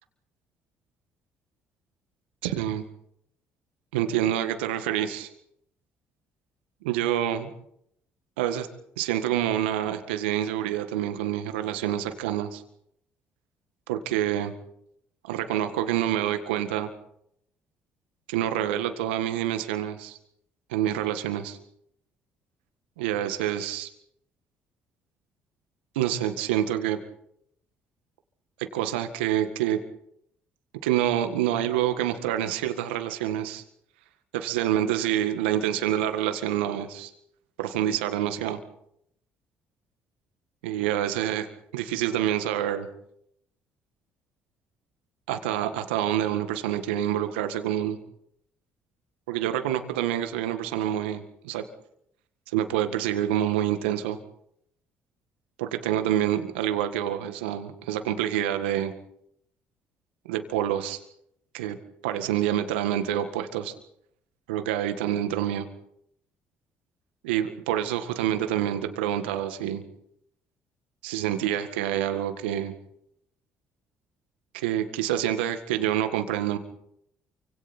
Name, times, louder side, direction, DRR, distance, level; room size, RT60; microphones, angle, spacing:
voice 1, 2.4-2.8 3.9-5.3 6.8-7.5 8.4-8.7 9.0-12.6 13.9-14.5 15.2-16.9 18.3-20.2 20.7-21.6 23.0-23.9 26.0-27.0 28.7-29.8 30.8-33.6 34.3-37.1 37.6-38.6 40.6-41.5 41.7-42.9 45.3-48.0 49.3-51.6 52.5-54.2 55.6-58.9 60.3-61.0 61.5-61.8 62.0-63.7 64.5-65.7 67.2-69.8 71.0-72.7 74.5-76.6, right 11 dB, 85° right, 8 dB, 1.7 m, -27 dB
28.5 x 25.0 x 4.4 m, 0.73 s
hypercardioid pair, 55°, 6 cm